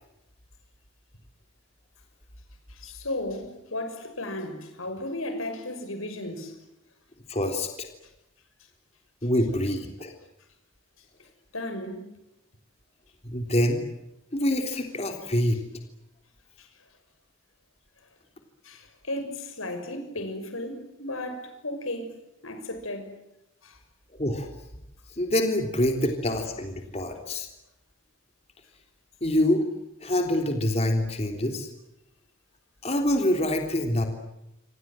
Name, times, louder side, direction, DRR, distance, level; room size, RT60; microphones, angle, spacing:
voice 1, 2.7-6.6 11.5-12.1 16.6-16.7 18.6-22.1 22.4-23.2 23.6-23.8, left 1 dB, 90° left, 6.3 m, -35 dB
voice 2, 7.3-7.9 9.2-10.1 13.2-13.8 14.3-15.6 24.1-24.5 25.2-27.5 29.2-29.6 30.0-31.7 32.8-34.1, left 1 dB, 30° left, 3.4 m, -25 dB
27.5 x 26.5 x 7.6 m
head